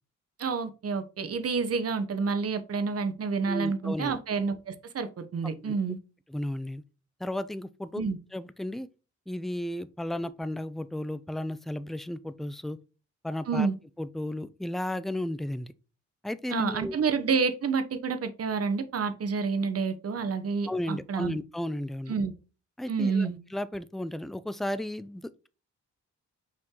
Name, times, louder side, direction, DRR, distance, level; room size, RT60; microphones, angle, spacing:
voice 1, 0.4-6.0 7.9-8.2 13.5-13.7 16.5-21.4 22.1-22.3 22.9-23.4, right 5 dB, 55° right, 1.1 m, -29 dB
voice 2, 3.5-4.2 5.4-5.8 6.3-6.8 7.2-8.0 8.3-8.9 9.3-12.8 13.2-13.7 14.0-15.7 16.2-17.0 20.7-22.1 22.8-25.5, left 1 dB, ahead, 0.5 m, -34 dB
6.2 x 4.5 x 3.8 m
cardioid pair, 90°, 29 cm